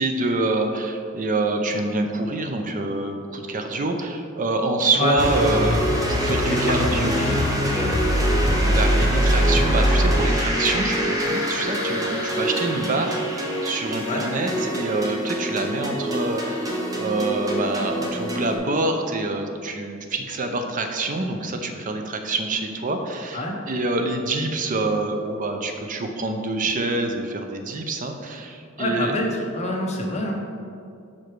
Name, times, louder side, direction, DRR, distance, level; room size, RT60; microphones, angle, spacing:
voice 1, 0.0-5.8 6.1-7.3 8.6-29.1, right 2 dB, 40° right, 5 dB, 0.6 m, -26 dB
sound 1, 5.2-18.6, equal, 15° right, 0.9 m, -23 dB
voice 2, 6.4-8.1 14.1-14.2 23.3-23.5 28.8-29.3 29.5-30.3, left 1 dB, 30° left, 0 dB, 0.9 m, -27 dB
5.7 x 5.0 x 4.6 m, 2.4 s
head